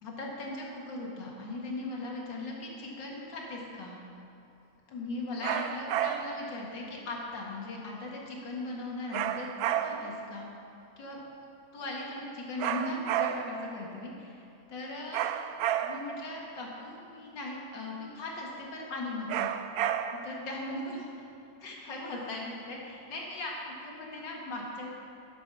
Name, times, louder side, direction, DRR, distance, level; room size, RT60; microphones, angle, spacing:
voice 1, 0.0-4.0 4.9-9.5 9.8-10.4 11.0-11.2 11.7-14.4 14.7-19.5 20.2-21.1 21.6-24.9, left 2 dB, 70° left, -2 dB, 2.5 m, -39 dB
sound 1, 5.4-6.5 9.1-10.2 12.6-13.7 15.1-16.2 19.3-20.4, right 10 dB, 70° right, 0.9 m, -31 dB
11.5 x 10.5 x 4.8 m, 2.8 s
omnidirectional pair, 2.0 m